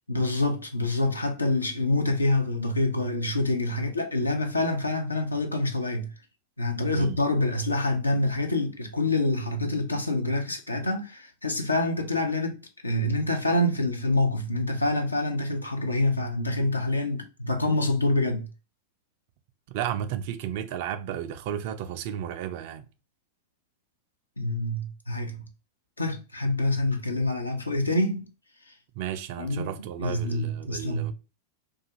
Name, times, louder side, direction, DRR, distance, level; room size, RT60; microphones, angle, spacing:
voice 1, 0.1-6.1 6.6-12.6 12.8-18.5 24.4-25.4 26.0-28.3 29.4-31.1, left 2 dB, 80° left, 0.4 m, -26 dB
voice 2, 6.9-7.2 19.7-22.8 29.0-31.1, right 10 dB, 50° right, 0.3 m, -33 dB
2.3 x 2.3 x 2.7 m
figure-of-eight pair, 90°, 0 cm